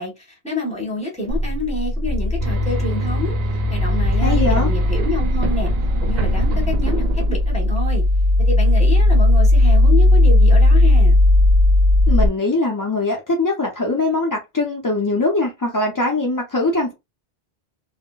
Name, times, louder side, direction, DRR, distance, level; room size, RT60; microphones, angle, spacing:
voice 1, 0.0-3.4 3.7-5.7 6.0-8.0 8.5-11.2, left 1 dB, 5° left, 1.3 m, -28 dB
sound 1, 1.3-12.3, left 1 dB, 35° right, 1.0 m, -16 dB
sound 2, 2.4-7.8, right 2 dB, 65° right, 0.8 m, -26 dB
voice 2, 4.2-4.7 12.1-16.9, left 2 dB, 35° left, 0.3 m, -21 dB
3.6 x 2.1 x 2.3 m
omnidirectional pair, 1.1 m